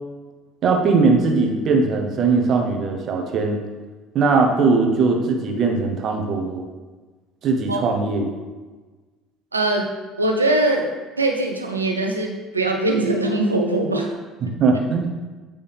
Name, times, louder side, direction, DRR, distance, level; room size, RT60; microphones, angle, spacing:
voice 1, 0.6-3.6 4.1-6.6 7.4-8.3 14.4-15.1, right 4 dB, 45° right, 3 dB, 1.1 m, -20 dB
voice 2, 9.5-9.9 10.2-10.9 11.2-14.1, right 2 dB, 90° right, 2 dB, 0.7 m, -21 dB
8.8 x 5.3 x 3.5 m, 1.3 s
figure-of-eight pair, 60°, 0 cm